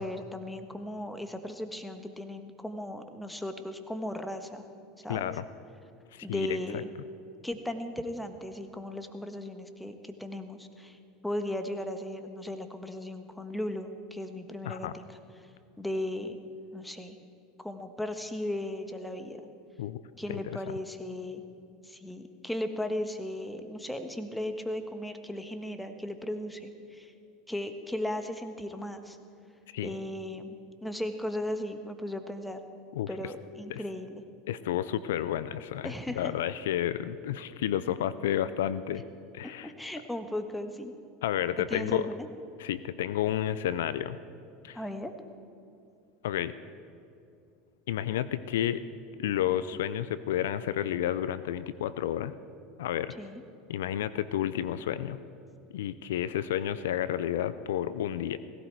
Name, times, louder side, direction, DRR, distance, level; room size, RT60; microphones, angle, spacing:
voice 1, 0.0-4.6 5.0-5.3 6.2-6.9 7.4-11.0 11.2-15.5 15.8-16.4 16.7-17.2 17.6-19.4 20.2-21.4 21.8-27.1 27.5-29.2 29.8-32.6 33.1-34.2 35.8-36.3 39.4-40.9 41.6-42.3 44.7-45.1 53.2-53.4, left 1 dB, 5° left, 7 dB, 1.4 m, -36 dB
voice 2, 5.1-5.4 6.1-6.6 14.6-14.9 19.8-20.0 20.3-20.4 29.7-29.9 33.0-33.1 33.7-33.8 34.5-39.0 39.3-39.7 41.2-42.1 42.6-44.2 44.6-44.8 46.2-46.5 47.9-48.8 49.2-52.4 52.8-53.2 53.7-55.2 55.7-58.4, left 11 dB, 80° left, 15 dB, 0.4 m, -31 dB
17.5 x 16.0 x 4.6 m, 2.5 s
hypercardioid pair, 85°, 0 cm